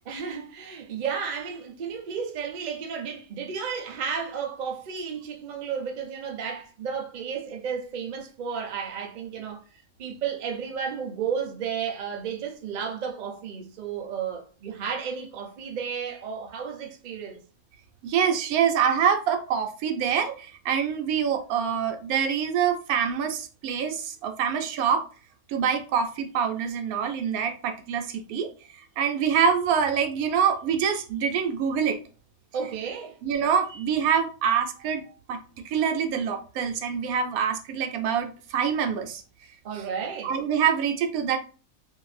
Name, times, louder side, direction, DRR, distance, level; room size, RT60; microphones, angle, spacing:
voice 1, 0.1-9.6 10.0-17.4 32.5-33.2 39.6-40.3, right 6 dB, 55° right, 0.5 m, -33 dB
voice 2, 18.0-25.0 25.5-28.5 29.0-32.0 33.2-35.0 35.3-39.2 40.2-41.4, right 7 dB, 85° right, 1.0 m, -25 dB
2.7 x 2.5 x 3.2 m
omnidirectional pair, 1.5 m